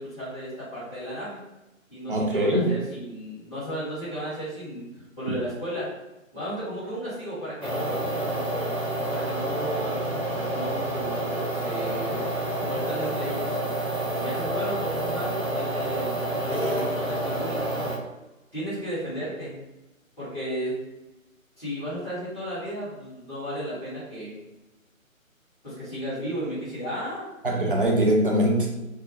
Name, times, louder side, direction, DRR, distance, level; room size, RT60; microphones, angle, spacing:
voice 1, 0.0-1.4 1.9-4.8 5.2-5.9 6.3-8.7 9.1-12.2 12.6-13.5 14.2-17.7 18.5-19.6 20.2-20.8 21.6-24.4 25.6-27.3, equal, 10° left, -14 dB, 0.9 m, -34 dB
voice 2, 2.1-2.8 27.4-28.7, right 1 dB, 40° right, -1 dB, 0.5 m, -22 dB
sound 1, 7.6-18.0, right 1 dB, 20° right, 0.8 m, -28 dB
2.2 x 2.1 x 3.2 m, 1.0 s
figure-of-eight pair, 145°, 41 cm